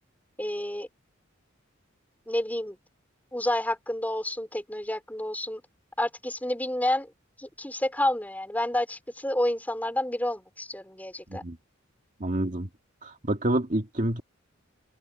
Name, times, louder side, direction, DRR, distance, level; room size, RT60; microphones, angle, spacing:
voice 1, 0.4-0.9 2.3-2.8 3.3-5.6 6.0-7.1 7.4-11.4, left 1 dB, 10° left, 5.1 m, -29 dB
voice 2, 12.2-12.7 13.0-14.2, right 1 dB, 40° right, 2.1 m, -28 dB
head